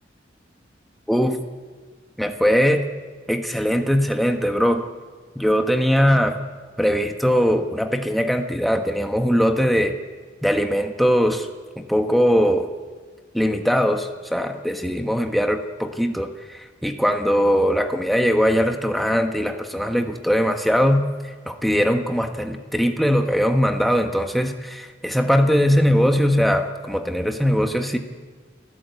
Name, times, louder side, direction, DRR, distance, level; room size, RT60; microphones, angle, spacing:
voice 1, 2.2-2.8 3.3-4.8 5.3-6.4 6.8-10.0 10.4-11.5 11.8-12.7 13.3-21.0 21.5-28.0, equal, ahead, 4 dB, 1.3 m, -20 dB
29.0 x 14.5 x 8.2 m, 1.5 s
head